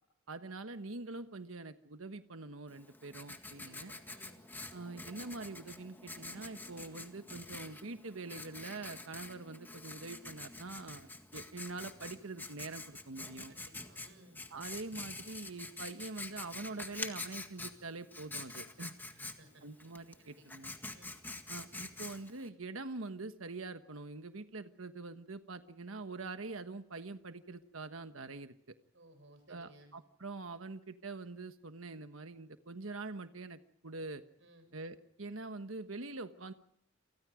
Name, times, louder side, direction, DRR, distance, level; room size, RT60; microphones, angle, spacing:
voice 1, 0.3-3.9 4.7-13.5 14.5-19.0 19.6-20.7 21.5-28.7 29.5-34.2 34.7-36.5, right 3 dB, 85° right, 9 dB, 1.3 m, -44 dB
Writing, 2.7-22.5, left 2 dB, 10° left, 1.8 m, -47 dB
voice 2, 3.5-4.4 13.5-14.4 19.0-19.6 20.2-20.4 20.9-21.1 28.9-29.9 34.4-34.7, right 1 dB, 65° right, 8 dB, 7.8 m, -60 dB
29.5 x 24.0 x 5.0 m, 0.69 s
head